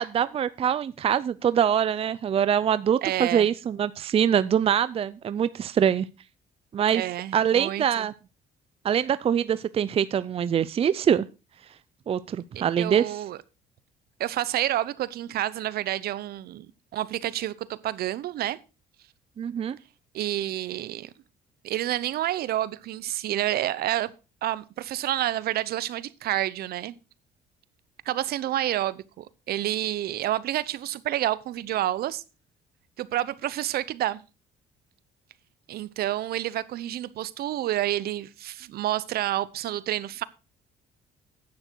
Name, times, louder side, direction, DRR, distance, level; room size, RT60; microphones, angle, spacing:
voice 1, 0.0-6.1 6.7-7.0 7.3-8.1 8.8-11.3 12.1-13.0 19.4-19.8, right 8 dB, 35° right, 0.5 m, -24 dB
voice 2, 3.0-3.5 6.9-8.1 12.6-13.4 14.2-18.6 20.1-21.1 21.6-24.1 24.4-27.0 28.1-32.2 33.0-34.2 35.7-40.2, right 13 dB, 65° right, 0.8 m, -29 dB
10.5 x 9.1 x 4.6 m
cardioid pair, 110°, 17 cm